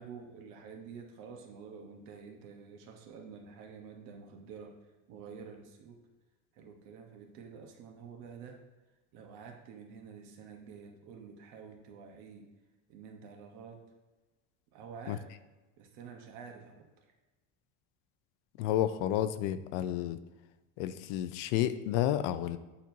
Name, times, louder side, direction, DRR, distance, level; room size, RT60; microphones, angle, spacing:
voice 1, 0.0-4.8 5.1-6.0 6.5-8.6 9.1-12.5 12.9-13.9 14.7-15.2 15.8-17.0, right 6 dB, 60° right, 3 dB, 1.1 m, -49 dB
voice 2, 18.6-20.2 20.8-22.6, left 12 dB, 70° left, 12 dB, 0.5 m, -31 dB
8.4 x 4.4 x 2.7 m, 1.2 s
cardioid pair, 165°, 33 cm